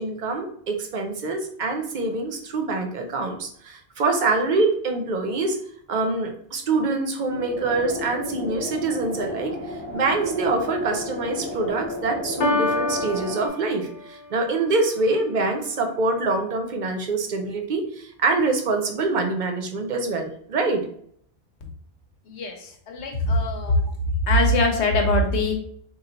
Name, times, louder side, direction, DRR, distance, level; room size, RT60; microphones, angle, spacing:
voice 1, 0.0-5.6 5.9-20.8, right 3 dB, 50° right, 4 dB, 0.6 m, -25 dB
sound 1, 7.3-13.5, left 1 dB, 15° left, 0.4 m, -33 dB
Piano, 12.4-14.4, left 2 dB, 50° left, 0.8 m, -27 dB
voice 2, 22.3-23.8 24.3-25.5, left 1 dB, 70° left, 3 dB, 1.1 m, -22 dB
3.2 x 2.4 x 3.8 m, 0.63 s
omnidirectional pair, 1.2 m